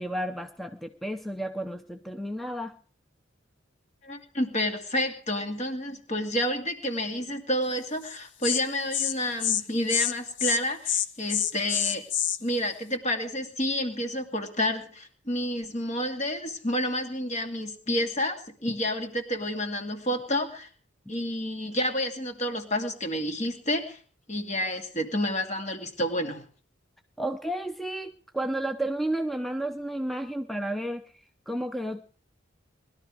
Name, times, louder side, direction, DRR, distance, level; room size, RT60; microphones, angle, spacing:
voice 1, 0.0-2.8 27.2-31.1 31.5-32.0, right 1 dB, ahead, 7 dB, 0.7 m, -32 dB
voice 2, 4.0-12.0 12.4-20.7 21.1-24.0 24.3-26.4, equal, 35° left, 5 dB, 2.5 m, -29 dB
Insect, 8.0-8.2 8.4-8.6 8.9-9.1 9.4-9.6 9.9-10.1 10.4-10.6 10.9-12.4, left 10 dB, 65° left, 1.0 m, -26 dB
20.5 x 12.5 x 4.9 m, 0.42 s
head